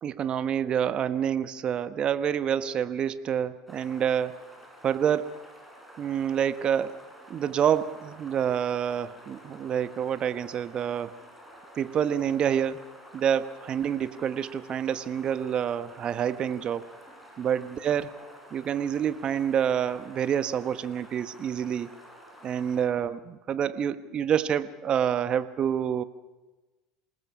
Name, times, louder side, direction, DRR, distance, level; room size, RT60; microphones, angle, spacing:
voice 1, 0.0-4.4 4.8-5.4 6.0-7.0 7.3-11.2 11.7-12.8 13.1-16.9 17.4-18.2 18.5-21.9 22.4-26.0, right 8 dB, 40° right, 13 dB, 1.1 m, -27 dB
sound 1, 3.7-22.8, equal, ahead, 7.2 m, -50 dB
27.0 x 19.5 x 6.1 m, 1.2 s
hypercardioid pair, 75°, 2 cm